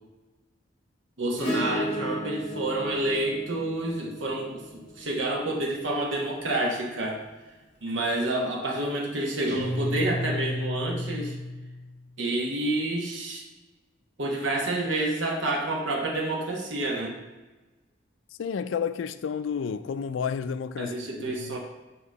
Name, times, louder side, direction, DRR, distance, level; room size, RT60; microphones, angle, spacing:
voice 1, 1.2-7.2 7.8-11.4 12.2-13.4 14.2-17.2 20.8-21.6, right 1 dB, 85° right, 1.2 m, -29 dB
Acoustic guitar / Strum, 1.4-6.0 7.9-8.0, equal, 35° left, 1.6 m, -35 dB
Guitar, 9.5-12.1, left 1 dB, 40° right, 1.2 m, -32 dB
voice 2, 18.4-20.9 21.3-21.6, left 6 dB, 90° left, 0.4 m, -31 dB
8.0 x 3.0 x 6.1 m
head